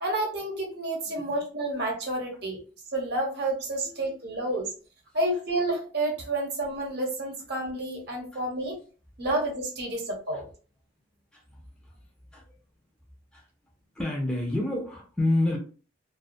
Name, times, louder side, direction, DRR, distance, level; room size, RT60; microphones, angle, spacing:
voice 1, 0.0-2.6 2.9-4.7 5.1-8.8 9.2-10.5, right 1 dB, 55° right, 0 dB, 0.8 m, -30 dB
voice 2, 3.9-4.2 8.3-8.4 11.3-11.6 12.3-12.4 13.3-13.4 14.0-15.6, left 1 dB, 5° left, -2 dB, 0.4 m, -29 dB
2.2 x 2.2 x 2.5 m, 0.38 s
head